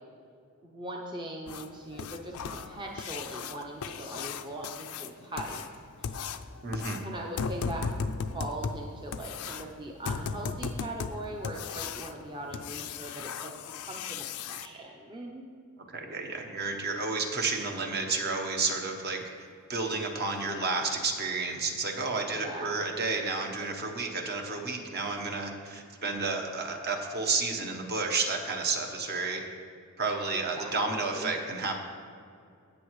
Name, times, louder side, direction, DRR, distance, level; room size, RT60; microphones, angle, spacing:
voice 1, 0.6-6.3 7.0-13.5 13.8-15.5 22.3-22.8 30.3-30.7 31.0-31.3, right 1 dB, 20° right, 0 dB, 0.6 m, -40 dB
sound 1, 1.5-14.7 17.0-17.1 17.5-17.6 18.1-18.2 18.7-18.8 19.2-19.4 19.8-19.9 20.3-20.4, left 5 dB, 90° left, 0.5 m, -37 dB
voice 2, 6.6-7.0 15.9-19.2 19.7-29.4 30.0-31.8, right 3 dB, 50° right, 3 dB, 1.1 m, -31 dB
17.5 x 6.5 x 3.1 m, 2.4 s
head